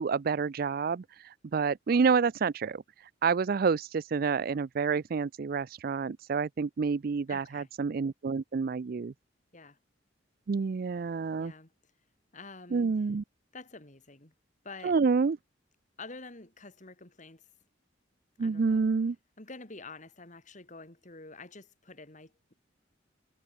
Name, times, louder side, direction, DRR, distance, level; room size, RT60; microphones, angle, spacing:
voice 1, 0.0-9.1 10.5-11.5 12.7-13.2 14.8-15.4 18.4-19.2, right 5 dB, 50° right, 0.4 m, -28 dB
voice 2, 7.3-7.7 9.5-9.8 11.4-11.7 12.3-13.0 13.5-14.3 14.6-15.0 16.0-17.4 18.4-18.9 19.4-22.5, left 3 dB, 40° left, 3.2 m, -48 dB
head